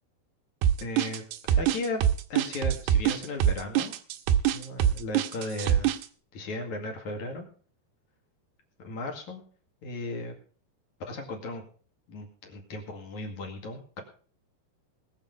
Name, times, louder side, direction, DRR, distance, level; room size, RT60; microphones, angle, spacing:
sound 1, 0.6-6.0, right 10 dB, 80° right, 2.8 m, -24 dB
voice 1, 0.8-1.2 1.5-2.0 2.3-3.9 4.5-5.9 6.3-7.5 8.8-9.4 9.8-10.3 11.1-11.6 12.1-14.0, left 2 dB, 50° left, 2 dB, 3.2 m, -36 dB
20.0 x 7.2 x 5.3 m, 0.43 s
omnidirectional pair, 4.7 m